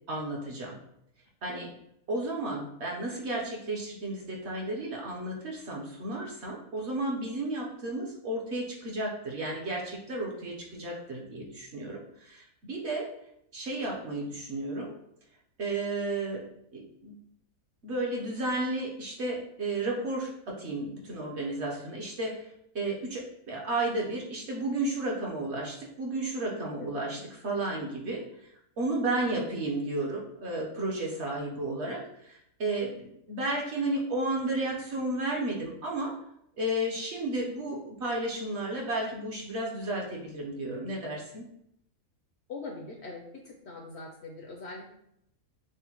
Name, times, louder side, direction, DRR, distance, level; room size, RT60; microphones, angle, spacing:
voice 1, 0.1-0.8 1.4-1.7 2.1-13.1 13.5-14.9 15.6-16.5 16.7-17.1 17.8-22.5 22.7-28.3 28.8-36.1 36.6-41.4, right 2 dB, 55° right, -2 dB, 0.9 m, -33 dB
voice 2, 26.8-27.3 29.1-29.4 42.5-44.9, left 3 dB, 65° left, 1 dB, 0.7 m, -43 dB
6.1 x 2.1 x 2.9 m, 0.75 s
omnidirectional pair, 1.5 m